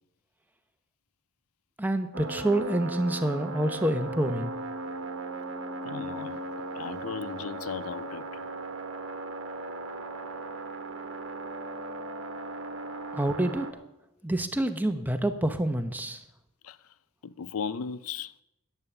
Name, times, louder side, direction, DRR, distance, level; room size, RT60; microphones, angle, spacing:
voice 1, 1.8-4.5 13.1-13.7 14.2-16.2, right 1 dB, 10° right, 0.8 m, -27 dB
sound 1, 2.1-13.7, right 2 dB, 65° right, 1.2 m, -37 dB
voice 2, 5.8-6.4 6.7-8.4 16.6-16.8 17.2-18.3, left 6 dB, 85° left, 0.5 m, -36 dB
10.5 x 10.5 x 6.9 m
head